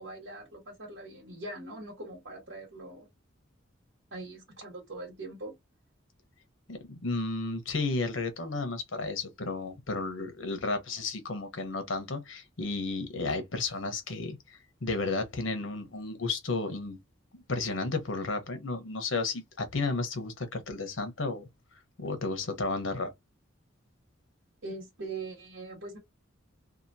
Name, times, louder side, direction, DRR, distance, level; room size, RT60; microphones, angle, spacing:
voice 1, 0.0-3.1 4.1-5.5 24.6-26.0, right 2 dB, 75° right, 1.5 m, -42 dB
voice 2, 6.7-17.0 17.3-21.5 22.0-23.1, left 3 dB, 80° left, 1.0 m, -33 dB
2.9 x 2.5 x 2.7 m
head